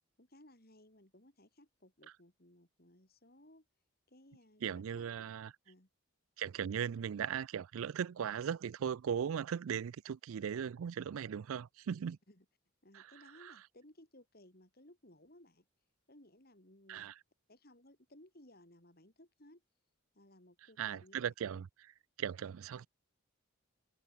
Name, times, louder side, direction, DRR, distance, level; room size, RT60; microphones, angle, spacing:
voice 1, 0.2-3.7 4.1-5.1 5.7-5.9 12.3-12.5 12.8-15.7 16.1-17.1 17.5-19.6 20.1-21.3, left 1 dB, 45° left, 3.9 m, -61 dB
voice 2, 4.6-5.5 6.4-12.2 12.9-13.0 16.9-17.1 20.8-21.7 22.2-22.9, right 8 dB, 80° right, 0.4 m, -38 dB
head